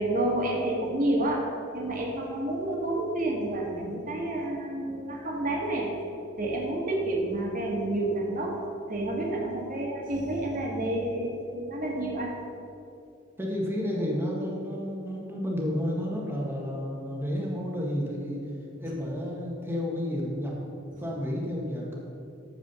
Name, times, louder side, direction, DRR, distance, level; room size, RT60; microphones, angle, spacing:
voice 1, 0.0-5.9 6.4-8.6 8.9-12.3, right 1 dB, 45° right, -1 dB, 2.0 m, -29 dB
voice 2, 13.4-18.4 18.8-20.5 21.0-22.0, equal, 10° right, -3 dB, 1.6 m, -31 dB
13.5 x 4.9 x 7.0 m, 2.6 s
head